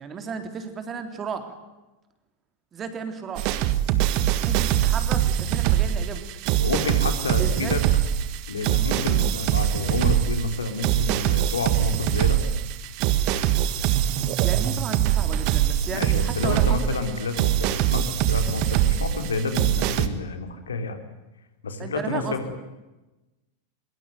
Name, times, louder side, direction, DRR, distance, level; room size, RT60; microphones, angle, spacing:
voice 1, 0.0-1.5 2.7-3.6 4.4-6.2 7.4-7.8 9.0-9.2 14.4-17.0 21.8-22.4, right 5 dB, 25° right, 7 dB, 3.7 m, -34 dB
sound 1, 3.4-20.1, right 11 dB, 45° right, 1.8 m, -23 dB
voice 2, 6.6-7.8 8.5-12.4 15.9-21.0 21.6-22.5, left 4 dB, 70° left, 7 dB, 3.5 m, -29 dB
24.0 x 23.0 x 9.4 m, 1.1 s
figure-of-eight pair, 90°, 0 cm